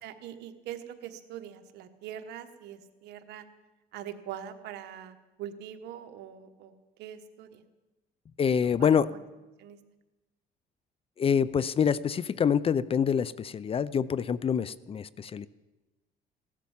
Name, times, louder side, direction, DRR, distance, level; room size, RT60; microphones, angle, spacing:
voice 1, 0.0-3.4 3.9-6.7 7.0-7.6 8.4-9.2 9.6-9.8, right 10 dB, 80° right, 8 dB, 1.3 m, -43 dB
voice 2, 8.4-9.1 11.2-15.5, left 7 dB, 35° left, 19 dB, 0.5 m, -26 dB
16.5 x 12.0 x 7.3 m, 1.1 s
cardioid pair, 110°, 17 cm